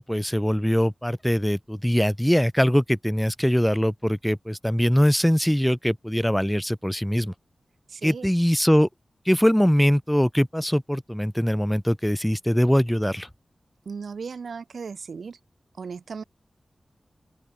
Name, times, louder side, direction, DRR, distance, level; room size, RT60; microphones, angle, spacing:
voice 1, 0.0-7.3 8.0-8.9 9.3-13.3, equal, 5° left, 0.5 m, -22 dB
voice 2, 7.9-8.3 13.9-15.4 15.8-16.2, right 5 dB, 85° right, 3.7 m, -36 dB
open air
cardioid pair, 40°, 0 cm